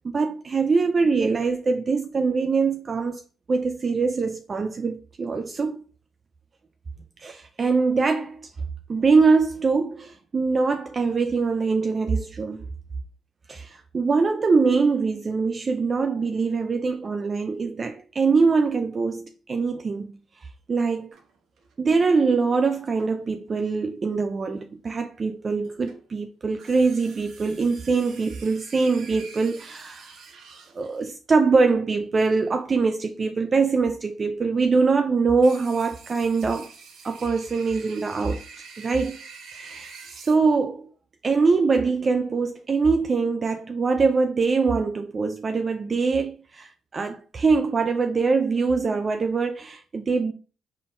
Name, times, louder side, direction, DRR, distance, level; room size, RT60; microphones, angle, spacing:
voice 1, 0.0-3.2 3.5-5.8 7.2-8.4 8.9-12.6 13.5-20.1 20.7-21.1 21.8-30.2 30.8-36.7 37.0-38.4 38.8-39.1 39.5-40.9 41.2-50.3, right 4 dB, 40° right, 0.4 m, -23 dB
sound 1, 21.1-21.7 23.0-23.6 25.6-26.1 26.6-31.1 35.4-40.3, right 5 dB, 75° right, 1.0 m, -46 dB
4.2 x 3.6 x 2.6 m
cardioid pair, 90°, 0 cm